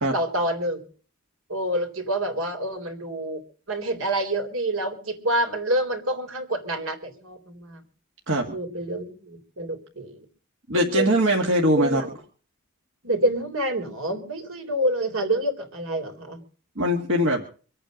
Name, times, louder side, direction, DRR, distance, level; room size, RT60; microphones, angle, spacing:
voice 1, 0.1-0.9 1.5-3.4 3.7-7.8 8.5-10.2 10.7-11.1 11.8-12.2 13.0-16.4, right 1 dB, 80° right, 5 dB, 3.8 m, -27 dB
voice 2, 10.7-12.0 16.8-17.4, equal, 60° right, 1 dB, 1.9 m, -21 dB
25.0 x 8.9 x 5.2 m, 0.41 s
head